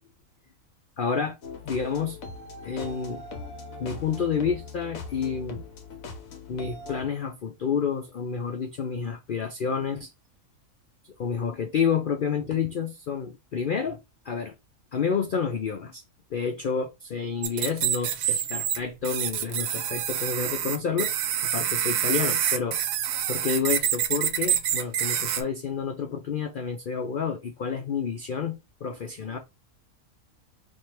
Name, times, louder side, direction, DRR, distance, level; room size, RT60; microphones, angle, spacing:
voice 1, 1.0-1.4 1.6-3.2 3.8-5.6 6.5-10.1 11.2-14.0 14.2-14.5 14.9-16.0 16.3-21.1 21.4-22.8 23.3-29.4, left 6 dB, 90° left, 0.4 m, -29 dB
sound 1, 1.4-7.0, left 3 dB, 65° left, 1.2 m, -40 dB
sound 2, 17.4-18.8 19.0-25.4, right 10 dB, 70° right, 1.0 m, -27 dB
3.3 x 2.4 x 4.3 m
omnidirectional pair, 1.6 m